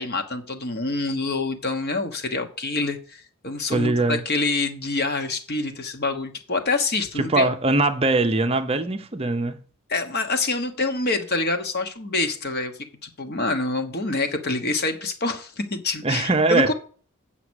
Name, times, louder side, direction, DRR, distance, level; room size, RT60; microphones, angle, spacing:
voice 1, 0.0-7.5 9.9-12.7 13.0-16.7, left 3 dB, 45° left, 1.3 m, -26 dB
voice 2, 3.7-4.2 7.2-9.6 16.0-16.7, right 2 dB, 25° right, 0.6 m, -21 dB
8.4 x 5.9 x 6.3 m
head